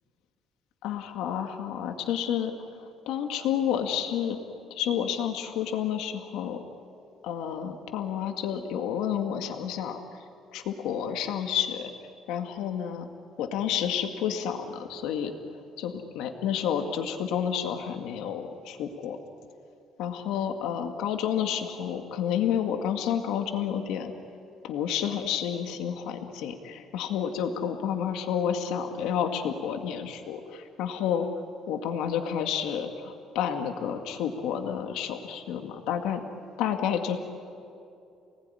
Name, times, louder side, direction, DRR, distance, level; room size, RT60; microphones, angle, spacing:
voice 1, 0.8-6.6 7.2-10.0 10.5-11.9 12.3-13.1 13.4-15.3 15.8-19.2 20.0-24.1 24.6-31.3 31.7-36.2 36.6-37.2, left 9 dB, 85° left, 5 dB, 2.0 m, -30 dB
29.5 x 19.5 x 9.9 m, 2.6 s
cardioid pair, 180°, 0 cm